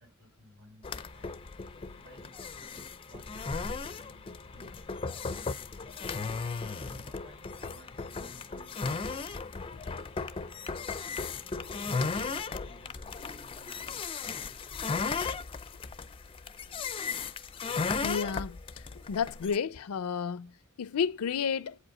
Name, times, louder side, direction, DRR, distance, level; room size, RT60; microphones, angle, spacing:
voice 1, 0.0-1.4 1.9-6.4 6.7-10.7 11.1-15.0, right 1 dB, 50° right, 2.4 m, -59 dB
sound 1, 0.8-19.6, left 4 dB, 25° left, 0.4 m, -36 dB
voice 2, 18.0-18.6 19.1-20.5 20.8-21.8, left 6 dB, 85° left, 0.5 m, -31 dB
8.3 x 5.0 x 7.5 m
head